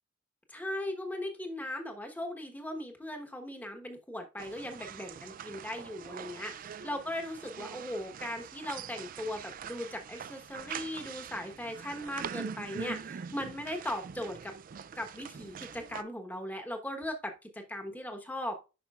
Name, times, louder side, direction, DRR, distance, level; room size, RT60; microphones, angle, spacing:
voice 1, 0.5-14.5 14.9-18.6, left 1 dB, 10° left, 4 dB, 1.1 m, -38 dB
sound 1, 4.4-16.0, right 7 dB, 45° right, 0.3 m, -43 dB
9.4 x 5.8 x 2.4 m, 0.29 s
head